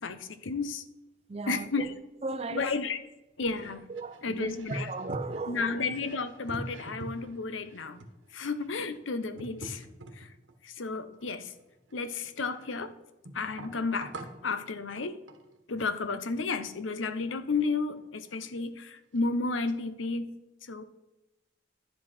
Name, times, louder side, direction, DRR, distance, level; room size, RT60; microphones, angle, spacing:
voice 1, 0.0-0.8 1.5-1.9 2.5-3.0 3.4-3.8 4.2-4.9 5.5-8.0 8.3-9.9 10.2-10.3 10.6-11.5 11.9-12.9 13.3-14.1 14.4-15.2 15.7-20.3 20.6-20.8, left 4 dB, 85° left, 0.8 m, -32 dB
voice 2, 1.3-1.9 2.2-2.7 3.9-5.8, right 3 dB, 30° right, 0.6 m, -37 dB
sound 1, 3.5-10.5 11.1-12.8 13.2-14.5 15.3-15.5 18.0-18.1 18.3-18.5 19.2-19.3 19.7-19.8, right 1 dB, 85° right, 1.2 m, -44 dB
10.5 x 7.7 x 4.3 m
head